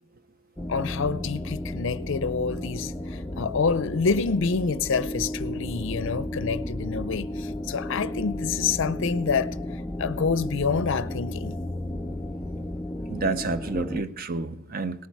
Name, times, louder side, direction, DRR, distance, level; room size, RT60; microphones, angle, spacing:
sound 1, 0.6-14.0, left 1 dB, 10° left, 0.5 m, -33 dB
voice 1, 0.7-9.6 10.0-11.6, left 5 dB, 60° left, 0.5 m, -27 dB
voice 2, 13.1-15.1, right 3 dB, 45° right, 0.6 m, -29 dB
18.0 x 8.6 x 4.6 m
head